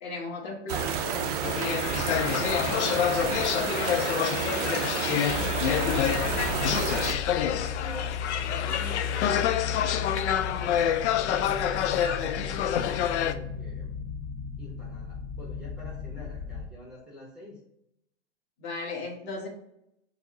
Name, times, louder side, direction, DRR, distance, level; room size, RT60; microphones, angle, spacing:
voice 1, 0.0-1.4 18.6-19.5, left 3 dB, 40° left, -1 dB, 1.2 m, -36 dB
sound 1, 0.7-7.1, right 8 dB, 35° right, 0.4 m, -30 dB
sound 2, 1.4-13.3, left 10 dB, 80° left, 0.5 m, -27 dB
voice 2, 2.0-4.8 5.1-8.1 8.5-13.9 14.6-17.6, left 1 dB, ahead, -4 dB, 0.7 m, -47 dB
sound 3, 5.3-16.7, left 6 dB, 60° left, 1.3 m, -35 dB
4.8 x 2.0 x 3.7 m, 0.79 s
hypercardioid pair, 135°, 34 cm